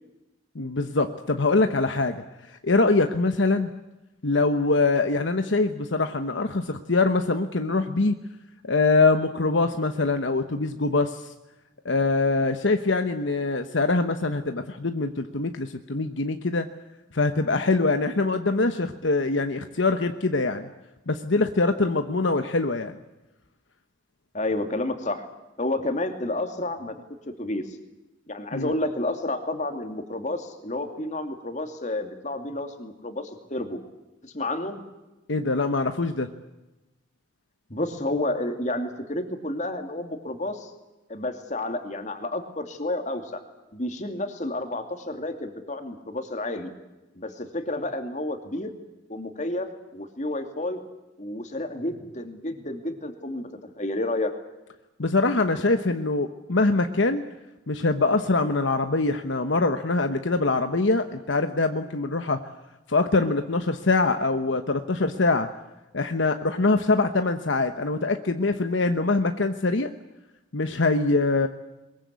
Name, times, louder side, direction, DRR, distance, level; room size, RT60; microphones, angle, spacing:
voice 1, 0.5-3.7 4.2-8.2 8.6-11.3 11.8-16.7 17.1-20.7 21.1-23.0 28.5-28.7 35.3-36.3 55.0-57.2 57.7-62.4 62.9-65.5 65.9-69.9 70.5-71.5, left 3 dB, 70° left, 8 dB, 1.1 m, -23 dB
voice 2, 24.3-25.2 25.6-26.9 27.3-27.8 28.3-33.8 34.2-34.8 37.7-40.7 41.1-43.4 43.7-46.7 47.2-48.8 49.1-50.8 51.2-53.5 53.8-54.3, left 1 dB, 40° left, 6 dB, 2.6 m, -30 dB
22.5 x 22.0 x 8.3 m, 1.0 s
head